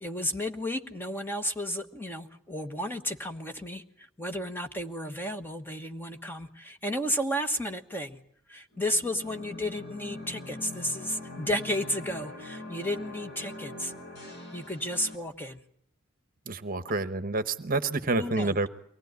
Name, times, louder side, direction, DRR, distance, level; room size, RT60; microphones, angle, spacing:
voice 1, 0.0-8.2 8.5-13.9 14.5-15.6 18.1-18.5, equal, 10° left, 6 dB, 1.2 m, -33 dB
sound 1, 8.7-15.2, left 2 dB, 50° left, 6.9 m, -43 dB
voice 2, 16.5-18.7, right 3 dB, 40° right, 12 dB, 1.0 m, -28 dB
23.5 x 19.0 x 9.5 m, 0.68 s
head